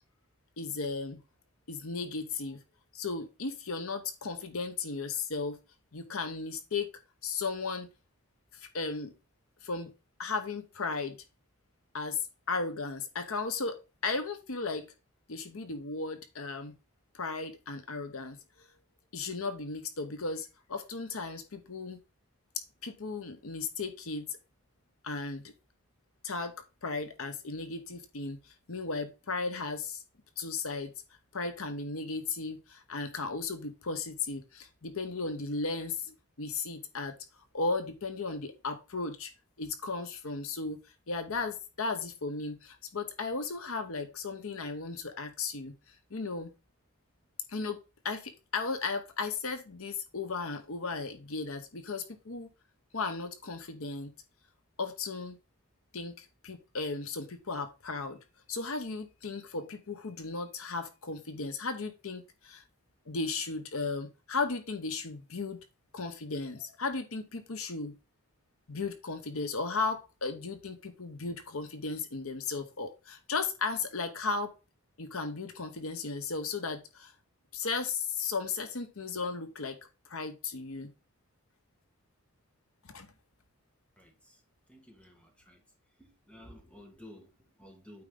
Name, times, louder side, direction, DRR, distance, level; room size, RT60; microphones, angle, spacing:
voice 1, 0.6-1.2 1.7-2.6 2.9-5.6 5.9-6.9 7.2-7.9 8.5-9.1 9.6-9.9 10.2-11.2 11.9-13.8 14.0-14.9 15.3-16.7 17.1-18.7 19.1-22.0 22.6-24.4 25.0-25.5 26.2-26.5 26.8-30.0 30.4-30.9 31.3-37.1 37.5-39.3 39.6-40.8 41.1-46.5 47.5-47.8 48.0-52.5 52.9-54.1 54.8-55.4 55.9-58.2 58.5-62.6 63.1-65.6 65.9-67.9 68.7-74.5 75.0-77.1 77.5-79.8 80.1-80.9 82.8-83.1, left 4 dB, 70° left, 1.0 m, -35 dB
voice 2, 84.0-84.4 84.7-85.6 86.0-88.0, left 1 dB, 5° left, 1.7 m, -53 dB
8.8 x 4.6 x 3.8 m
head